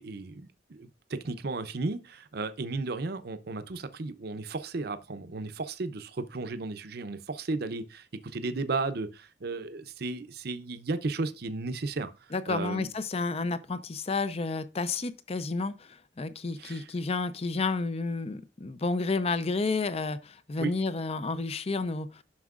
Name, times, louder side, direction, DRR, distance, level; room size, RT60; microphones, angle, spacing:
voice 1, 0.0-12.1 12.5-12.9 16.6-16.9 20.6-20.7, right 3 dB, 60° right, 0.6 m, -34 dB
voice 2, 12.3-22.2, left 3 dB, 35° left, 0.5 m, -31 dB
9.5 x 6.1 x 2.4 m
head